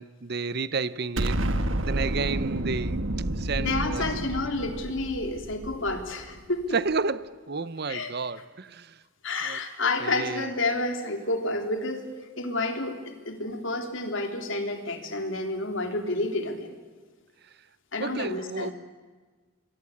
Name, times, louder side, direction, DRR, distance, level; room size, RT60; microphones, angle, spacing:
voice 1, 0.0-1.4 1.8-3.0 3.4-4.1 6.7-9.0 9.4-9.6 10.0-10.5 18.0-18.7, right 4 dB, 50° right, 0.7 m, -31 dB
Explosion, 1.2-6.3, right 1 dB, 65° right, 1.5 m, -30 dB
voice 2, 3.6-6.8 7.9-8.1 9.2-12.1 12.4-16.7 17.9-18.7, left 2 dB, 65° left, 3.5 m, -30 dB
26.5 x 23.0 x 8.6 m
head